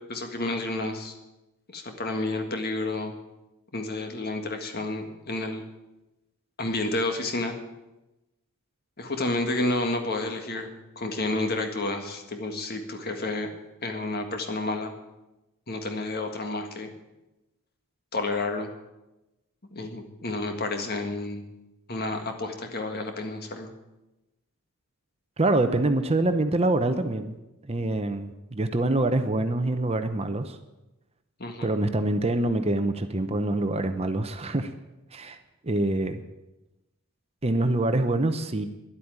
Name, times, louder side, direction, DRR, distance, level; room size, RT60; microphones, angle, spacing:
voice 1, 0.1-1.1 1.7-3.1 3.7-5.6 6.6-7.5 9.0-13.5 13.8-14.9 15.7-16.9 18.1-18.7 19.7-21.4 21.9-23.7 31.4-31.7, left 2 dB, 45° left, 5 dB, 1.8 m, -30 dB
voice 2, 25.4-27.4 27.7-30.6 31.6-34.7 35.1-35.4 35.6-36.2 37.4-38.7, right 2 dB, 25° right, 8 dB, 0.8 m, -25 dB
11.5 x 8.4 x 9.6 m, 0.99 s
head